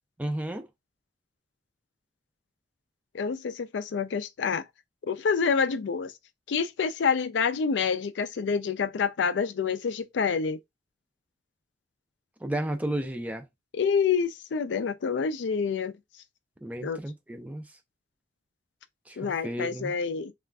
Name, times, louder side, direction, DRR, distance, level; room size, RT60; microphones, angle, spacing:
voice 1, 0.2-0.7 12.4-13.4 16.6-17.6 19.1-19.9, right 1 dB, 10° right, 0.5 m, -33 dB
voice 2, 3.1-4.7 5.0-6.1 6.5-10.6 13.7-15.9 16.8-17.0 19.2-20.3, left 6 dB, 85° left, 0.4 m, -27 dB
3.4 x 2.4 x 2.2 m
head